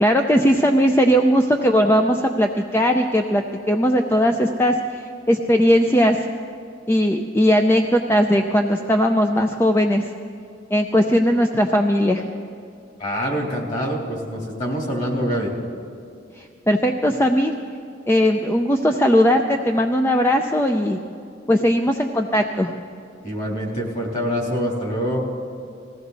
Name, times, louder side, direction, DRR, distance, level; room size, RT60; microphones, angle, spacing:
voice 1, 0.0-6.2 6.9-10.1 10.7-12.2 16.4-17.5 18.1-21.0 21.5-22.7, equal, 15° left, 4 dB, 0.5 m, -18 dB
voice 2, 13.0-15.5 23.2-25.2, equal, 40° left, -1 dB, 3.2 m, -25 dB
20.0 x 16.0 x 4.0 m, 2.5 s
head